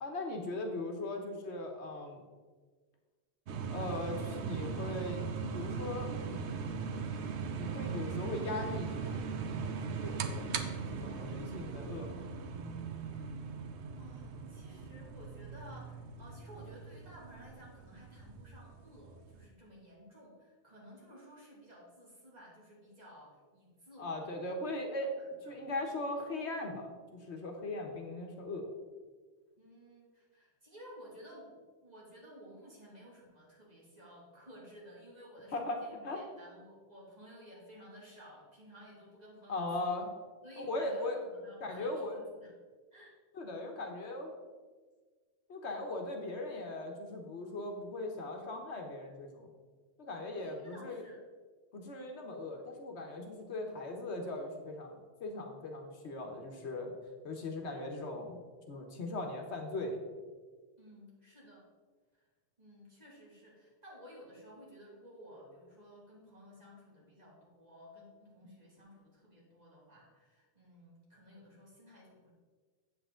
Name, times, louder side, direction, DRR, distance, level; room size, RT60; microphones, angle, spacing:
voice 1, 0.0-2.2 3.7-5.2 5.5-6.6 7.6-9.2 9.8-10.5 10.9-12.2 24.0-25.1 25.5-28.7 35.5-35.8 36.0-36.2 39.5-40.1 40.6-41.2 41.6-42.2 43.3-44.4 45.5-49.5 50.0-51.0 51.7-56.9 57.2-58.4 58.7-60.0, left 2 dB, 85° left, 3 dB, 1.5 m, -39 dB
sound 1, 3.5-19.4, right 5 dB, 85° right, 1.0 m, -39 dB
voice 2, 13.9-24.8 25.1-25.7 29.6-40.0 40.4-42.5 42.9-43.2 50.3-51.2 60.8-61.7 62.1-62.3 62.6-72.3, equal, 40° right, -5 dB, 2.6 m, -55 dB
8.2 x 7.8 x 3.8 m, 1.4 s
omnidirectional pair, 1.1 m